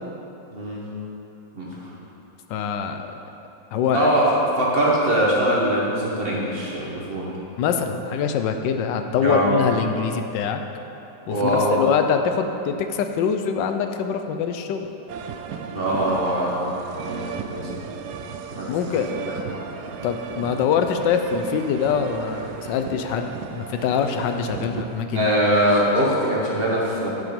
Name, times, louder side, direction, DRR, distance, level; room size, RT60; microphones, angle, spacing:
voice 1, 0.5-0.9 1.5-1.8 3.9-7.3 9.2-9.6 11.3-11.8 15.7-17.9 18.5-19.7 25.1-27.1, right 1 dB, 35° right, -5 dB, 1.6 m, -22 dB
voice 2, 2.5-3.1 3.7-4.1 7.6-10.6 11.3-14.9 18.7-19.1 20.0-25.3, left 7 dB, 90° left, 6 dB, 1.3 m, -24 dB
sound 1, 15.1-25.0, right 6 dB, 75° right, 1.1 m, -35 dB
10.0 x 6.0 x 5.3 m, 2.9 s
omnidirectional pair, 1.9 m